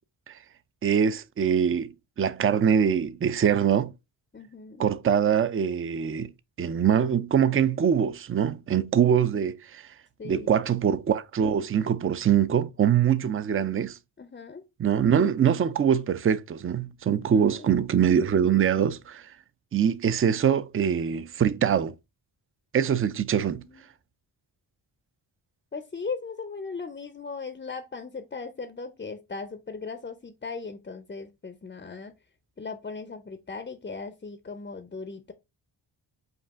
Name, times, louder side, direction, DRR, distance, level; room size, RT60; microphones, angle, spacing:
voice 1, 0.8-3.9 4.8-6.3 6.6-9.8 10.2-14.0 14.8-19.3 19.7-21.9 22.7-23.6, right 8 dB, 30° right, 0.4 m, -23 dB
voice 2, 4.3-4.9 10.2-10.7 14.2-14.6 17.2-17.7 23.0-23.2 23.6-23.9 25.7-32.1 32.6-35.3, left 4 dB, 20° left, 0.5 m, -38 dB
5.3 x 2.4 x 3.5 m
cardioid pair, 60°, 49 cm